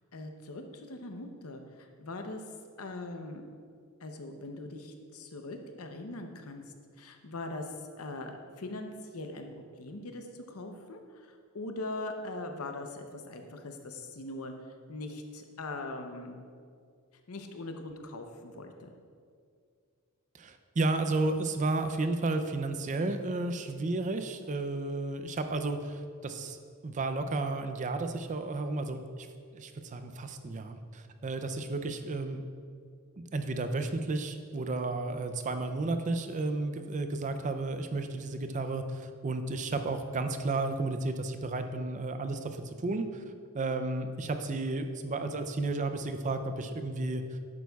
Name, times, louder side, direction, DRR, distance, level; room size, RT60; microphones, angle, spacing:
voice 1, 0.1-2.4 2.8-3.4 4.0-14.5 14.9-16.5 17.3-18.9 32.1-32.2, left 2 dB, 70° left, 5 dB, 0.8 m, -41 dB
voice 2, 20.4-26.6 26.8-29.3 29.5-32.4 33.2-43.2 43.5-47.4, right 2 dB, 35° right, 8 dB, 0.5 m, -32 dB
11.0 x 8.2 x 2.3 m, 2.2 s
head